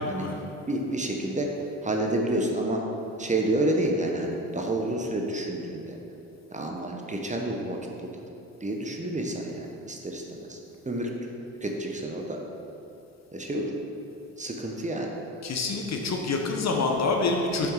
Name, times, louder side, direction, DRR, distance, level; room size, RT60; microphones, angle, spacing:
voice 1, 0.6-1.5 1.8-2.8 3.2-6.0 6.5-8.1 8.6-10.6 10.8-11.1 11.6-12.4 13.3-13.7 14.4-15.1, right 1 dB, 20° right, 1 dB, 1.1 m, -29 dB
voice 2, 15.4-17.7, left 3 dB, 40° left, 2 dB, 1.1 m, -26 dB
6.9 x 6.0 x 4.9 m, 2.8 s
hypercardioid pair, 60°, 39 cm